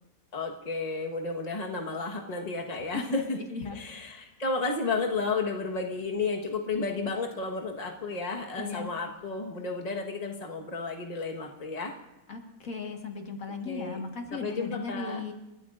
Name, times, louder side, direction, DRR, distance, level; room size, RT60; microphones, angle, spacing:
voice 1, 0.3-3.4 3.7-11.9 13.7-14.0 14.3-15.2, left 3 dB, 30° left, 0 dB, 1.4 m, -32 dB
voice 2, 2.9-3.2 3.5-3.8 8.6-9.0 12.3-15.3, left 4 dB, 70° left, 3 dB, 2.0 m, -36 dB
29.5 x 13.0 x 2.5 m, 1.0 s
omnidirectional pair, 1.5 m